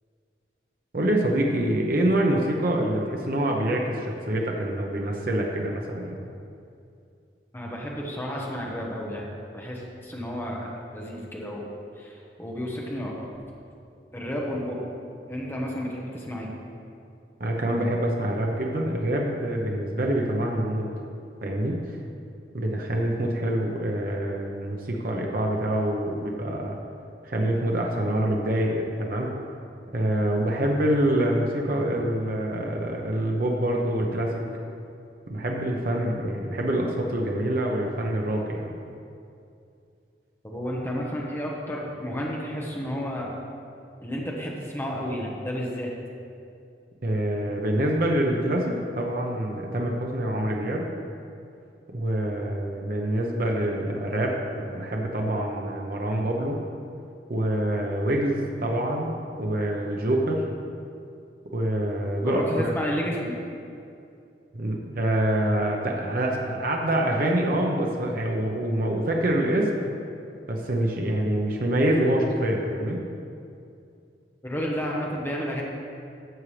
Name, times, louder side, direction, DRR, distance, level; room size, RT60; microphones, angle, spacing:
voice 1, 0.9-6.2 17.4-20.9 21.4-21.8 22.5-26.8 27.2-29.3 29.9-34.4 35.3-38.9 47.0-50.9 51.9-56.6 57.3-59.1 59.4-60.4 61.5-62.7 64.5-70.0 70.5-73.0, right 1 dB, 55° right, 0 dB, 0.8 m, -26 dB
voice 2, 7.5-9.3 9.5-13.3 14.1-14.8 15.3-16.5 40.4-43.3 44.0-45.9 62.2-63.3 74.4-75.6, equal, 15° left, -3 dB, 1.1 m, -31 dB
12.5 x 7.3 x 3.3 m, 2.5 s
head